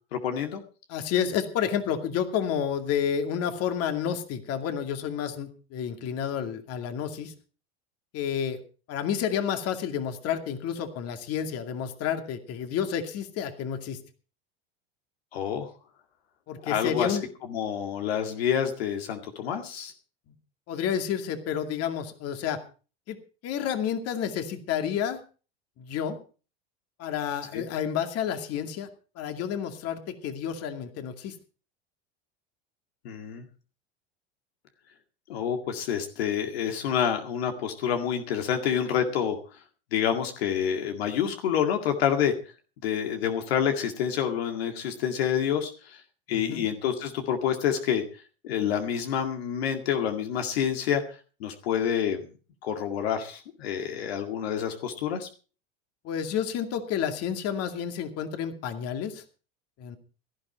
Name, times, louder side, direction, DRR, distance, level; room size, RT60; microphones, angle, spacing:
voice 1, 0.1-0.6 15.3-15.7 16.6-17.2 17.5-19.9 27.5-27.6 33.0-33.4 35.3-39.4 39.9-42.3 42.8-46.0 46.3-48.0 48.4-51.0 51.4-52.3 52.6-55.3, left 8 dB, 85° left, 5 dB, 2.1 m, -28 dB
voice 2, 0.9-7.3 8.1-8.6 8.9-14.0 16.5-17.3 20.3-20.4 20.7-22.6 23.1-23.2 23.4-25.2 25.8-26.2 27.0-28.9 29.2-31.3 46.3-46.7 56.0-59.2 59.8-60.0, left 8 dB, 55° left, 7 dB, 2.4 m, -30 dB
17.0 x 12.5 x 4.4 m, 0.36 s
supercardioid pair, 100°, 30 cm